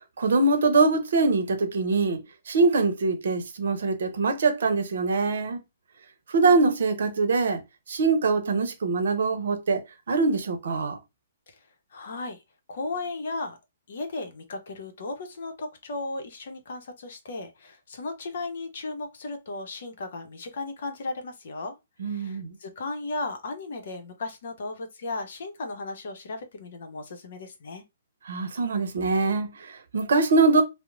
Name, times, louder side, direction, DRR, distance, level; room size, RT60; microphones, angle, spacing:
voice 1, 0.2-2.2 2.5-5.6 6.3-7.6 7.9-9.8 10.1-11.0 22.0-22.5 28.3-30.6, right 3 dB, 65° right, 0.7 m, -23 dB
voice 2, 11.9-12.4 12.7-13.6 13.9-21.8 22.0-27.8, left 3 dB, 65° left, 0.7 m, -35 dB
2.9 x 2.0 x 2.4 m
hypercardioid pair, 125°, 0 cm